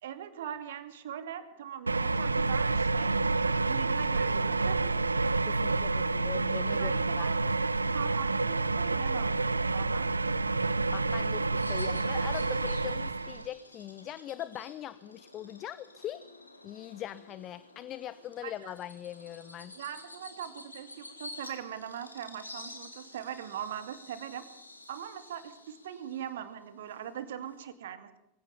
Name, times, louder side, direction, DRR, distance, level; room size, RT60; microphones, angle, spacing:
voice 1, 0.0-3.1 3.4-4.8 6.7-7.4 7.9-10.1 18.4-18.7 19.7-24.4 24.9-28.2, right 9 dB, 60° right, 11 dB, 2.5 m, -41 dB
sound 1, 1.9-13.5, right 3 dB, 80° right, 0.7 m, -29 dB
voice 2, 5.4-7.4 10.9-16.2 16.6-19.8, left 12 dB, 30° left, 17 dB, 0.8 m, -41 dB
Bird vocalization bird call bird song, 11.6-27.6, left 2 dB, 85° left, 3.3 m, -50 dB
22.5 x 16.5 x 7.2 m, 0.82 s
figure-of-eight pair, 90°, 0 cm